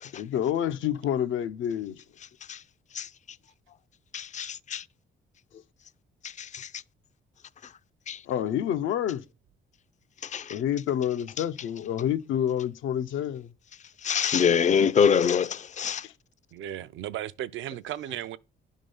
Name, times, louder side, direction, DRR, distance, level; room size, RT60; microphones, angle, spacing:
voice 1, 0.1-2.0 8.3-9.2 10.5-13.5 14.5-14.9 16.0-16.1, left 10 dB, 80° left, 0.6 m, -28 dB
voice 2, 4.1-4.8 6.2-6.7 8.1-8.2 10.2-10.6 14.0-16.1, left 7 dB, 40° left, 0.4 m, -25 dB
voice 3, 16.5-18.4, right 12 dB, 75° right, 0.5 m, -35 dB
10.0 x 3.7 x 5.4 m
cardioid pair, 90°, 20 cm